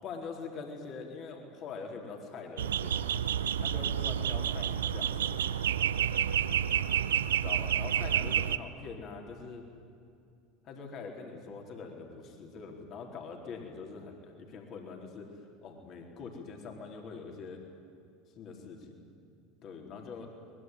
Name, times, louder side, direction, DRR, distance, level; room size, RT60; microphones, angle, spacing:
voice 1, 0.0-3.1 3.6-5.3 7.3-9.6 10.6-15.3 15.6-17.6 18.4-18.9 19.6-20.3, left 4 dB, 50° left, 2 dB, 4.1 m, -43 dB
sound 1, 2.6-8.6, right 9 dB, 80° right, 0.6 m, -29 dB
24.0 x 21.0 x 9.4 m, 2.5 s
hypercardioid pair, 75°, 0 cm